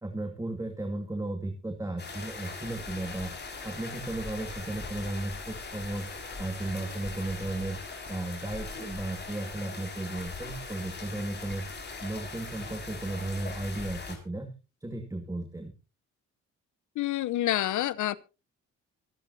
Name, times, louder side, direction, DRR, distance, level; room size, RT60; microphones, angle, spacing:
voice 1, 0.0-3.4 3.6-6.1 6.4-7.8 8.1-11.7 12.0-14.5 14.8-15.7, right 2 dB, 10° right, 2.3 m, -35 dB
sound 1, 2.0-14.2, left 3 dB, 35° left, 5.5 m, -40 dB
voice 2, 17.0-18.2, left 14 dB, 75° left, 0.9 m, -28 dB
25.0 x 9.9 x 2.8 m
cardioid pair, 90°, 30 cm